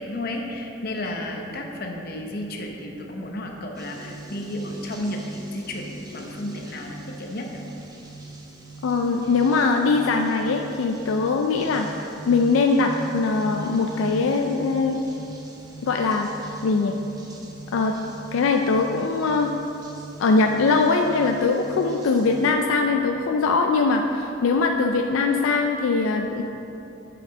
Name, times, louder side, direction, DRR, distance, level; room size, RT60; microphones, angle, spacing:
voice 1, 0.0-7.5, left 1 dB, 50° left, 1 dB, 0.8 m, -32 dB
sound 1, 3.7-22.5, right 2 dB, 20° right, 0.8 m, -41 dB
voice 2, 8.8-15.0 15.8-16.3 16.6-17.0 17.7-17.9 18.3-19.5 20.2-26.4, left 4 dB, 80° left, 3 dB, 0.4 m, -21 dB
6.0 x 5.0 x 6.1 m, 3.0 s
head